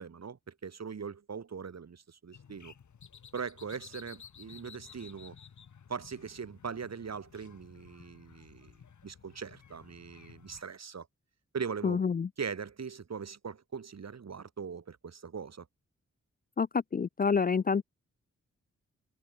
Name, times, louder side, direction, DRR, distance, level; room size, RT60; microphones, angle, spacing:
voice 1, 0.0-2.7 3.3-5.4 5.9-8.7 9.0-11.1 11.5-12.0 12.4-15.7, right 6 dB, 60° right, 2.9 m, -40 dB
sound 1, 2.3-10.6, left 7 dB, 80° left, 2.8 m, -54 dB
voice 2, 11.8-12.3 16.6-17.8, left 5 dB, 30° left, 0.4 m, -28 dB
wide cardioid pair, 90°, 29 cm